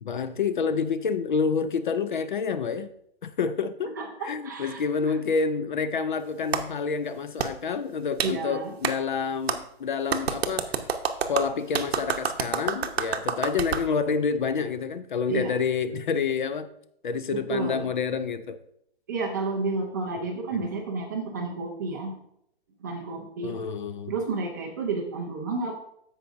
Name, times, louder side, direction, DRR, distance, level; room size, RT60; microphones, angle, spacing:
voice 1, 0.0-2.9 3.2-3.9 4.2-10.7 11.3-16.7 17.0-18.6 23.4-24.1, left 5 dB, 50° left, 0.5 m, -28 dB
voice 2, 4.0-4.8 8.2-8.7 15.3-15.6 17.3-17.9 19.1-22.2 22.8-23.7 24.1-25.8, right 3 dB, 20° right, 0.6 m, -31 dB
Clapping, 6.5-6.6 7.4-7.5 8.2-8.3 8.8-8.9 9.5-9.6 10.1-13.8, right 7 dB, 75° right, 0.9 m, -27 dB
14.0 x 4.9 x 2.6 m
hypercardioid pair, 175°, 31 cm